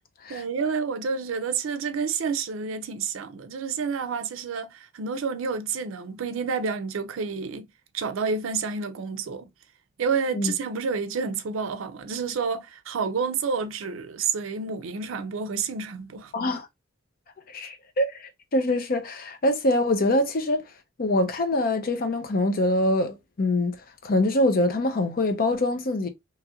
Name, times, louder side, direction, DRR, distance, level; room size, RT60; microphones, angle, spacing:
voice 1, 0.3-7.7 7.9-9.5 10.0-16.3, right 5 dB, 80° right, 0.4 m, -29 dB
voice 2, 16.3-16.7 17.5-20.6 21.0-23.8 24.0-26.1, left 1 dB, 45° left, 0.5 m, -24 dB
2.9 x 2.4 x 2.8 m
head